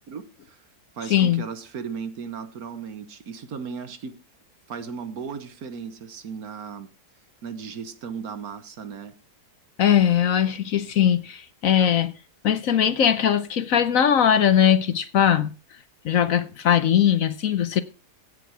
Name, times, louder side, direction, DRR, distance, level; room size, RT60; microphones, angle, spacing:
voice 1, 0.1-0.6 1.0-4.2 4.7-6.9 7.4-9.1, right 6 dB, 65° right, 1.6 m, -36 dB
voice 2, 1.1-1.4 9.8-12.1 12.4-15.5 16.0-17.8, left 9 dB, 60° left, 1.1 m, -20 dB
16.5 x 6.1 x 4.8 m
omnidirectional pair, 1.7 m